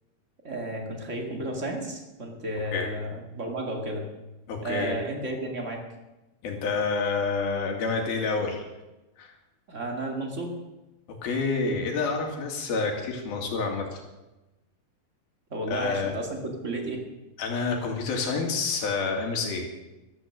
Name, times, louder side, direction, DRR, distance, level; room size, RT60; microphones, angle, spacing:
voice 1, 0.4-4.1 4.6-5.9 9.7-10.6 15.5-17.1, right 1 dB, 30° right, 2 dB, 1.5 m, -33 dB
voice 2, 4.5-5.0 6.4-8.6 9.2-9.3 11.2-14.0 15.7-16.1 17.4-19.7, left 4 dB, 70° left, 2 dB, 4.0 m, -28 dB
14.0 x 13.0 x 6.5 m, 1.0 s
omnidirectional pair, 4.6 m